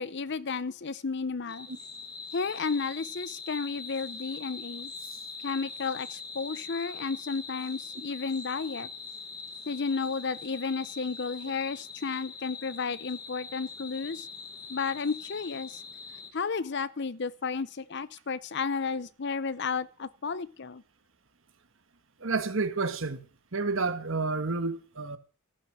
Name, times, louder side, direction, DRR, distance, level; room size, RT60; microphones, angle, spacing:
voice 1, 0.0-1.7 2.3-4.9 5.4-8.9 9.7-14.3 14.7-15.8 16.3-20.8, left 5 dB, 50° left, 0.6 m, -32 dB
sound 1, 1.5-16.3, left 4 dB, 20° left, 1.4 m, -42 dB
voice 2, 22.2-23.2 23.5-25.2, right 3 dB, 60° right, 1.4 m, -30 dB
14.0 x 10.5 x 6.1 m
head